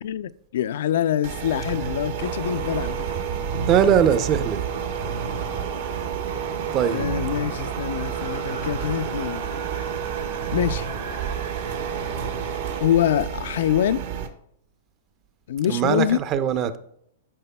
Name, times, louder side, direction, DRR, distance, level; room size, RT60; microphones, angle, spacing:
voice 1, 0.0-3.1 3.5-3.7 6.8-9.9 10.5-10.9 12.8-14.0 15.5-16.2, left 10 dB, 70° left, 0.3 m, -25 dB
sound 1, 1.2-14.3, right 8 dB, 65° right, 1.0 m, -31 dB
sound 2, 2.2-12.8, right 5 dB, 80° right, 1.6 m, -34 dB
voice 2, 3.7-4.6 4.9-5.1 5.8-6.1 6.7-7.1 15.7-16.8, right 8 dB, 35° right, 0.5 m, -21 dB
12.0 x 5.1 x 2.2 m
hypercardioid pair, 140°, 0 cm